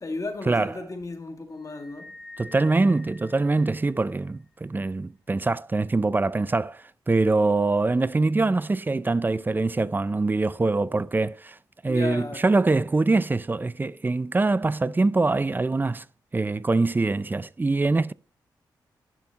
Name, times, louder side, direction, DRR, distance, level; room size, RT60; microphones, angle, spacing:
voice 1, 0.0-2.1 11.9-12.4, left 3 dB, 40° left, 1.9 m, -34 dB
sound 1, 1.6-4.3, left 3 dB, ahead, 1.3 m, -47 dB
voice 2, 2.4-11.6 11.8-16.0 16.3-18.1, right 3 dB, 20° right, 0.4 m, -24 dB
11.0 x 6.0 x 2.9 m
supercardioid pair, 50°, 9 cm